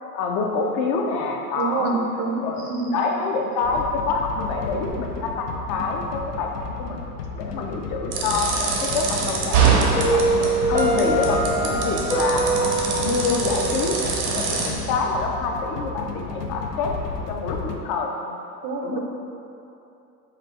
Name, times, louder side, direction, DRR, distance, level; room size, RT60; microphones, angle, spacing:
voice 1, 0.1-2.0 2.4-12.5 13.0-14.0 14.2-16.9 17.3-18.4 18.8-19.0, left 4 dB, 50° left, 1 dB, 0.6 m, -27 dB
voice 2, 1.5-2.4 2.7-2.9 18.6-19.0, right 4 dB, 40° right, 1 dB, 0.5 m, -26 dB
sound 1, 3.6-17.8, left 4 dB, 90° left, 0.6 m, -33 dB
sound 2, 8.1-14.7, right 5 dB, 70° right, 0.9 m, -25 dB
Piano, 10.0-14.9, right 2 dB, 5° left, 0.6 m, -24 dB
4.4 x 2.3 x 3.6 m, 2.8 s
hypercardioid pair, 100°, 47 cm